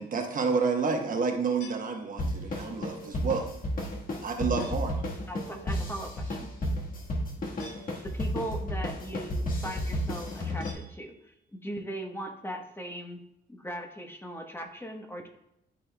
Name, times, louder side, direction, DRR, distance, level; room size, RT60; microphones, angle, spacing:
voice 1, 0.0-3.5 4.2-4.9, right 5 dB, 45° right, 3 dB, 1.2 m, -29 dB
sound 1, 1.6-2.5 4.6-5.1 7.6-8.4 10.6-11.5, left 2 dB, 85° left, 2.4 m, -52 dB
sound 2, 2.2-10.7, equal, 45° left, 1.6 m, -32 dB
voice 2, 5.3-6.5 8.1-11.3 11.6-13.2 13.5-15.3, right 1 dB, 10° left, 3 dB, 1.1 m, -39 dB
12.5 x 4.4 x 2.3 m, 0.82 s
cardioid pair, 90°, 20 cm